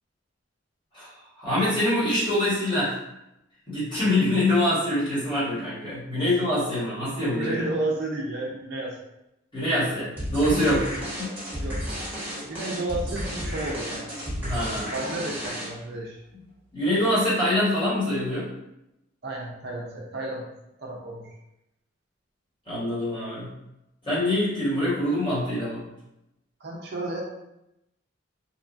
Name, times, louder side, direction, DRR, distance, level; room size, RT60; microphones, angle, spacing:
voice 1, 1.4-2.9 3.7-7.7 9.5-10.9 11.2-11.3 14.4-14.9 16.7-18.5 22.7-23.5 24.0-25.8, left 1 dB, 25° left, -10 dB, 1.1 m, -24 dB
voice 2, 7.3-9.0 11.6-11.8 12.4-14.1 14.9-16.2 19.2-20.5 20.8-21.3 26.6-27.2, right 2 dB, 50° right, -2 dB, 0.4 m, -32 dB
sound 1, 10.2-15.9, equal, 10° right, 1.1 m, -32 dB
2.9 x 2.3 x 2.4 m, 0.88 s
head